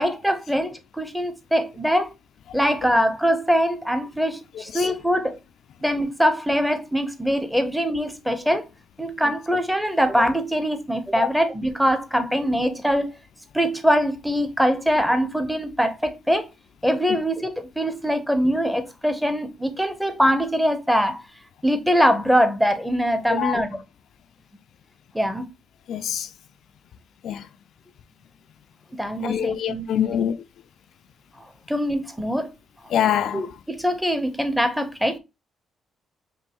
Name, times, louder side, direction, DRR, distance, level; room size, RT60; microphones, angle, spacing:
voice 1, 0.0-2.1 2.5-5.4 5.8-8.7 9.0-13.1 13.5-16.5 16.8-21.2 21.6-23.7 25.1-25.5 29.0-30.2 31.7-32.5 33.3-35.2, equal, ahead, 0.8 m, -23 dB
voice 2, 4.5-4.9 17.1-17.2 23.3-23.5 25.9-26.3 27.2-27.5 29.2-30.4 32.9-33.5, left 10 dB, 70° left, 0.4 m, -25 dB
5.2 x 2.6 x 3.0 m
cardioid pair, 90°, 0 cm